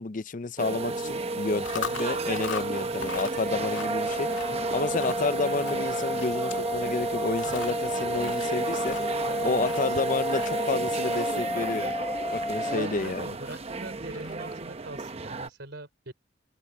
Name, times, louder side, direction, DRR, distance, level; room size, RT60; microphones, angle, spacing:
voice 1, 0.0-9.0 9.4-11.9 12.3-13.3, left 3 dB, 45° left, 0.6 m, -30 dB
sound 1, 0.6-15.5, right 3 dB, 35° right, 0.9 m, -32 dB
Chewing mastication, 1.4-14.7, left 6 dB, 85° left, 2.5 m, -42 dB
voice 2, 2.8-3.1 9.2-10.0 12.7-16.1, right 1 dB, 65° right, 5.2 m, -43 dB
sound 2, 3.4-12.8, left 1 dB, 10° left, 1.9 m, -33 dB
head